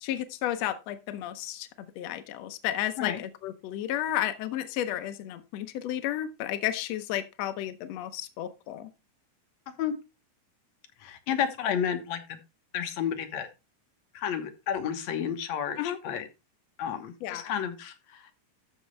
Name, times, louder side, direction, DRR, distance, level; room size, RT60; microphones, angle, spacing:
voice 1, 0.0-8.9 15.8-16.0 17.2-17.5, left 12 dB, 80° left, 1.5 m, -32 dB
voice 2, 11.0-12.4 12.7-13.5 14.1-16.3 16.8-18.3, left 8 dB, 65° left, 2.2 m, -31 dB
13.0 x 6.5 x 3.2 m
omnidirectional pair, 3.9 m